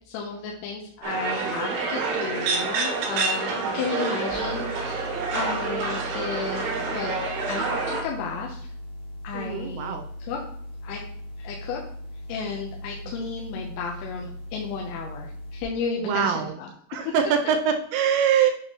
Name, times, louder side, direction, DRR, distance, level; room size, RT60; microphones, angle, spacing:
voice 1, 0.1-7.2 7.5-8.6 9.2-9.9 10.2-10.4 10.8-11.0 11.4-11.8 12.3-16.7 17.1-17.2, left 5 dB, 85° left, -1 dB, 3.5 m, -33 dB
sound 1, 1.0-8.0, right 4 dB, 60° right, 3.3 m, -28 dB
voice 2, 3.5-4.0 9.3-10.0 13.2-13.3 16.0-16.5 16.9-18.5, right 8 dB, 85° right, 4 dB, 3.2 m, -24 dB
sound 2, 4.3-15.6, left 1 dB, 55° left, 2.5 m, -39 dB
7.9 x 6.4 x 3.0 m, 0.64 s
omnidirectional pair, 5.7 m